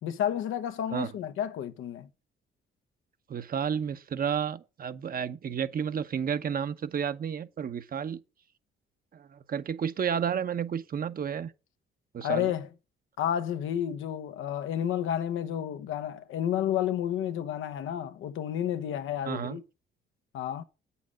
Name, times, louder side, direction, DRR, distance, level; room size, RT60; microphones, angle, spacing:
voice 1, 0.0-2.1 12.2-12.7 13.2-19.6 20.3-20.6, left 10 dB, 85° left, 1.1 m, -31 dB
voice 2, 3.3-8.2 9.1-11.5 12.1-12.5 19.2-19.6, right 7 dB, 45° right, 0.9 m, -31 dB
8.5 x 7.0 x 6.3 m
cardioid pair, 90°, 20 cm